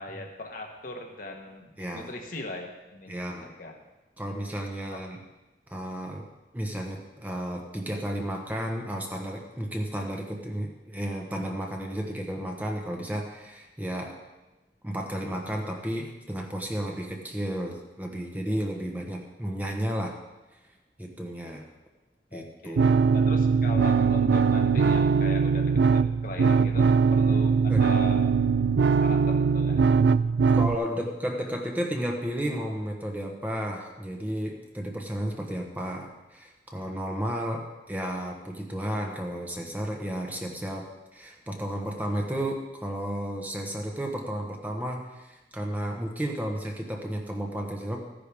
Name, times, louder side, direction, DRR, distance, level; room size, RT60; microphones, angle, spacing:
voice 1, 0.0-3.8 4.9-5.0 22.3-22.8 23.1-28.3 29.0-30.0, left 2 dB, 50° left, 2 dB, 1.4 m, -40 dB
voice 2, 1.8-2.1 3.1-3.5 4.2-5.2 5.7-6.2 6.5-14.1 14.8-20.2 21.0-21.6 22.3-23.0 24.9-25.0 27.3-27.4 27.7-27.8 30.5-48.0, equal, 10° right, 1 dB, 1.1 m, -33 dB
sound 1, 22.8-30.8, right 5 dB, 75° right, 0.4 m, -21 dB
14.5 x 10.0 x 3.5 m, 1.1 s
head